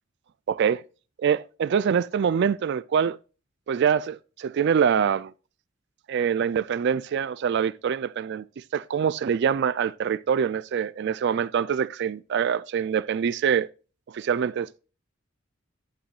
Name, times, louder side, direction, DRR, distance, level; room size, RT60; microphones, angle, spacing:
voice 1, 0.5-0.8 1.2-3.2 3.7-5.3 6.1-13.7 14.1-14.8, right 7 dB, 55° right, 0.3 m, -25 dB
11.5 x 8.1 x 2.4 m
head